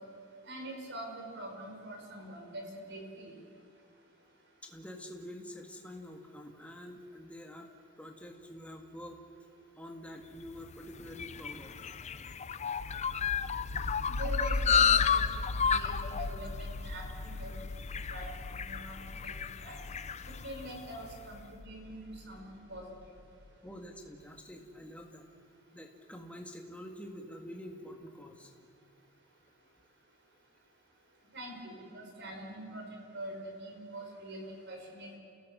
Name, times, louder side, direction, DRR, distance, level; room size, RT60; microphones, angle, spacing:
voice 1, 0.4-3.3 14.1-15.2 15.6-17.5 17.9-18.3 18.5-19.1 19.4-19.8 20.2-22.8 31.3-35.2, right 1 dB, 55° right, 1 dB, 5.1 m, -44 dB
voice 2, 4.6-7.7 8.0-9.2 9.8-12.3 23.6-25.3 25.7-28.6, equal, 5° left, 2 dB, 2.0 m, -47 dB
sound 1, 10.5-21.1, left 7 dB, 30° left, 0.5 m, -32 dB
sound 2, 12.8-23.5, left 2 dB, 85° left, 0.8 m, -39 dB
29.5 x 16.5 x 7.5 m, 2.5 s
head